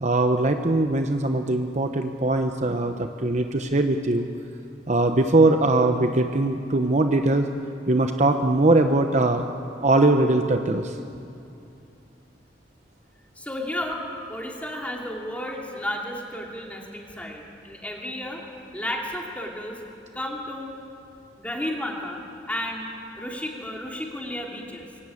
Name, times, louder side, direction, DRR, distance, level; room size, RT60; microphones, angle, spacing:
voice 1, 0.0-4.3 4.9-7.5 7.9-9.5 9.8-11.0, right 2 dB, 40° right, 6 dB, 0.9 m, -21 dB
voice 2, 13.3-18.4 18.7-19.8 20.1-20.8 21.4-22.2 22.5-24.9, left 1 dB, 10° left, -1 dB, 2.9 m, -33 dB
22.5 x 18.5 x 8.6 m, 2.6 s
head